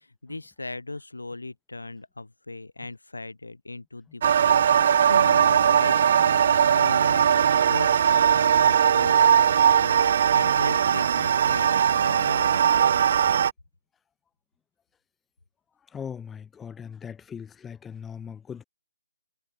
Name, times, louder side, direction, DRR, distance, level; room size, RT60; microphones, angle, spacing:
voice 1, 0.0-13.1, left 2 dB, 85° left, 3.4 m, -38 dB
sound 1, 4.2-13.5, right 8 dB, 50° right, 0.3 m, -20 dB
voice 2, 15.9-18.6, left 7 dB, 10° left, 4.5 m, -39 dB
figure-of-eight pair, 145°, 0 cm